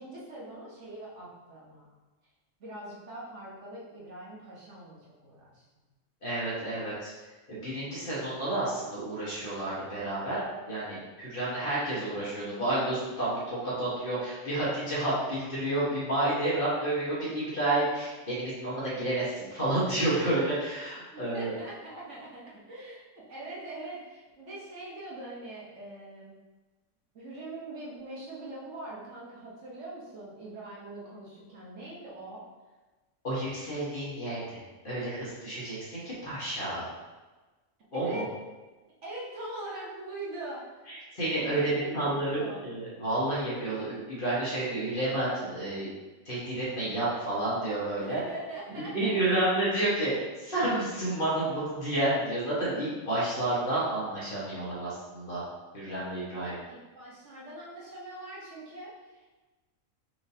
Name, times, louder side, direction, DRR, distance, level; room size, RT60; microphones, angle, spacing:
voice 1, 0.0-1.9 2.6-5.6 21.1-23.0 23.3-26.4 27.1-32.4 37.9-38.3 39.0-40.8 41.3-42.6 48.0-49.4 56.7-59.3, right 2 dB, 65° right, -6 dB, 1.3 m, -42 dB
voice 2, 6.2-7.1 7.5-21.5 33.2-36.9 37.9-38.3 40.9-45.9 46.2-48.2 48.8-55.4 55.7-56.6, right 1 dB, 40° left, -8 dB, 1.5 m, -30 dB
4.6 x 3.6 x 2.7 m, 1.2 s
omnidirectional pair, 1.4 m